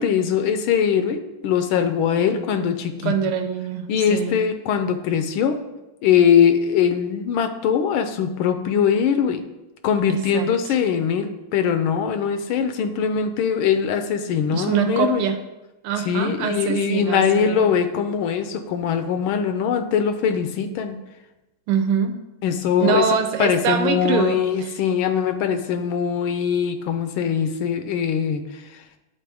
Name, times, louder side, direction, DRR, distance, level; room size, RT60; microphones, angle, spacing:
voice 1, 0.0-3.1 3.9-5.6 6.0-9.4 9.8-15.2 16.1-21.0 22.4-23.1 23.4-28.8, left 7 dB, 75° left, 8 dB, 1.3 m, -21 dB
voice 2, 3.0-4.4 10.1-10.5 14.5-15.4 15.8-17.7 21.7-22.1 22.8-24.7, right 7 dB, 85° right, 7 dB, 1.6 m, -24 dB
10.5 x 4.2 x 3.4 m, 1.0 s
omnidirectional pair, 2.4 m